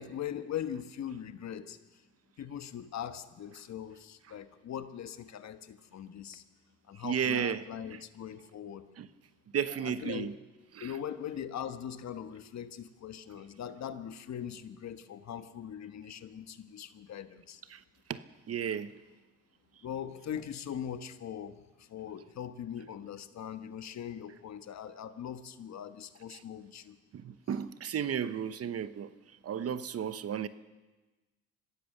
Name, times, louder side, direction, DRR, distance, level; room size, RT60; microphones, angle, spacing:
voice 1, 0.0-2.0 2.4-6.4 6.9-8.9 9.7-10.4 10.8-17.6 19.8-27.0, left 9 dB, 65° left, 1.4 m, -41 dB
voice 2, 7.0-7.6 9.0-9.1 9.5-10.3 10.8-10.9 17.7-17.8 18.1-18.2 18.5-18.9 26.3-26.4 27.1-29.1 29.4-30.5, right 8 dB, 50° right, 1.0 m, -33 dB
24.0 x 16.0 x 6.7 m
cardioid pair, 90°, 30 cm